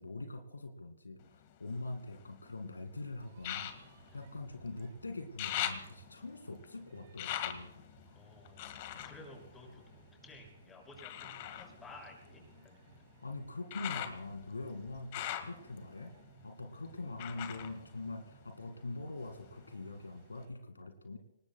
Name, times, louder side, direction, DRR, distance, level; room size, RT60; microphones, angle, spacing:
voice 1, 0.0-7.7 13.2-16.1 16.4-21.2, left 2 dB, 80° left, 7 dB, 2.0 m, -43 dB
sound 1, 1.2-2.6 3.4-4.9 5.2-10.3 11.0-18.8 19.1-20.0 20.4-20.5, left 12 dB, 40° left, 1.7 m, -43 dB
sound 2, 3.2-20.5, right 7 dB, 50° right, 3.0 m, -62 dB
voice 2, 8.1-13.0 16.7-17.0, left 2 dB, 10° left, 1 dB, 6.0 m, -55 dB
27.0 x 19.0 x 2.2 m, 0.90 s
figure-of-eight pair, 125°, 0 cm